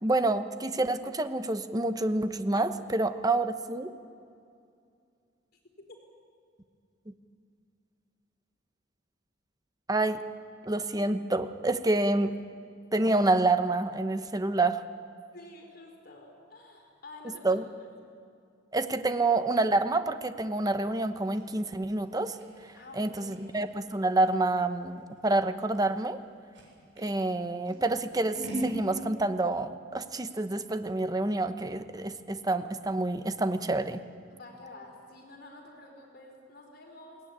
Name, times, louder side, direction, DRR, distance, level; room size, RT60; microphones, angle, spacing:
voice 1, 0.0-3.9 9.9-10.2 10.7-12.3 12.9-14.8 17.4-17.6 18.7-22.4 23.0-26.2 27.0-34.0, right 2 dB, 20° right, 9 dB, 1.0 m, -28 dB
voice 2, 15.3-17.9 22.7-23.6 34.3-37.2, left 2 dB, 55° left, 2 dB, 4.6 m, -49 dB
Scissors, 20.9-27.1 27.7-28.8, right 1 dB, 70° right, 7.3 m, -41 dB
21.5 x 18.0 x 9.7 m, 2.4 s
head